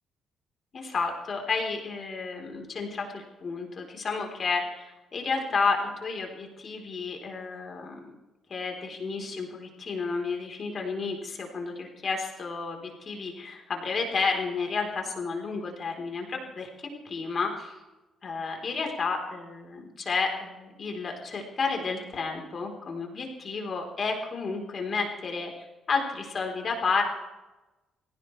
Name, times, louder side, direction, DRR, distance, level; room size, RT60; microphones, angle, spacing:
voice 1, 0.7-8.2 8.5-16.7 17.0-17.8 18.2-25.5 25.9-27.0, left 4 dB, 45° left, 2 dB, 3.8 m, -31 dB
25.0 x 16.5 x 3.3 m, 1.1 s
cardioid pair, 90°, 0 cm